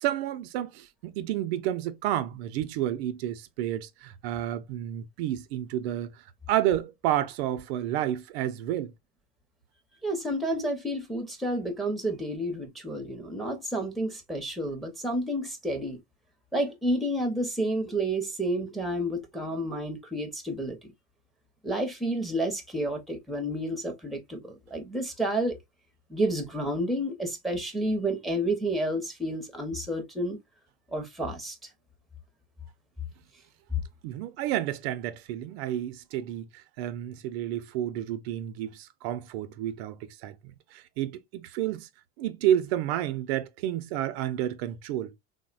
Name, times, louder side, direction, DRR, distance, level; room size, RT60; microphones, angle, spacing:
voice 1, 0.0-6.1 6.5-8.9 34.0-41.9 42.2-45.1, right 12 dB, 90° right, 0.5 m, -30 dB
voice 2, 10.0-16.0 16.5-20.8 21.6-25.6 26.1-30.4 30.9-31.5, right 1 dB, ahead, 0.6 m, -30 dB
3.5 x 2.1 x 2.3 m
supercardioid pair, 135°, 30 cm